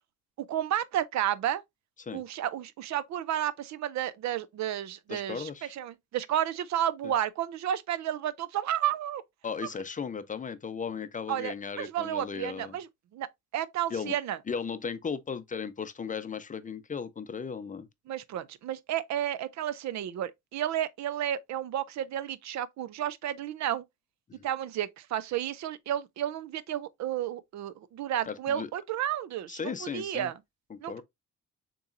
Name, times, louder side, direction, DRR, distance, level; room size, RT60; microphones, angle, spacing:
voice 1, 0.4-1.6 2.1-9.2 11.3-12.9 13.1-13.3 13.5-14.4 18.1-23.8 24.4-30.3 30.8-31.0, right 11 dB, 65° right, 0.5 m, -32 dB
voice 2, 5.1-5.7 7.0-7.1 9.4-12.8 13.9-14.2 14.5-17.9 24.3-24.5 28.3-28.7 29.5-30.3 30.7-31.0, left 6 dB, 25° left, 0.5 m, -36 dB
6.8 x 3.0 x 2.5 m
cardioid pair, 90°, 30 cm